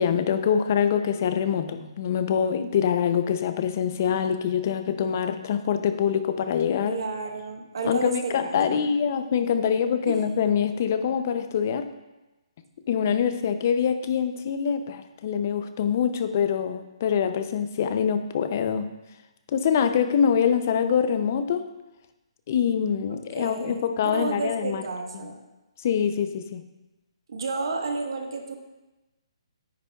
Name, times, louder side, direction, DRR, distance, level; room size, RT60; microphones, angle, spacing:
voice 1, 0.0-7.0 7.8-11.9 12.9-18.9 19.5-21.7 22.5-24.8 25.2-25.3 25.8-26.7, left 7 dB, 25° left, 9 dB, 0.4 m, -24 dB
voice 2, 6.9-8.8 10.1-10.2 23.1-23.8 24.1-25.4 27.3-28.6, right 4 dB, 50° right, 4 dB, 1.1 m, -31 dB
9.8 x 8.8 x 2.3 m, 1.0 s
hypercardioid pair, 175°, 3 cm